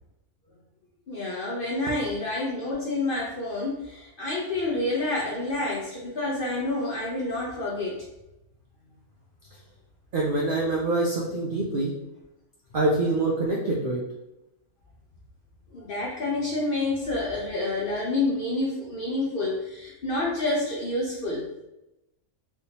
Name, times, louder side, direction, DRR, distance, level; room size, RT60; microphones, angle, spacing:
voice 1, 1.1-8.0 15.7-21.4, left 2 dB, 60° left, -4 dB, 0.6 m, -28 dB
voice 2, 10.1-11.9 12.7-14.0, right 2 dB, 80° right, -2 dB, 0.4 m, -25 dB
3.3 x 2.7 x 2.8 m, 0.93 s
omnidirectional pair, 1.5 m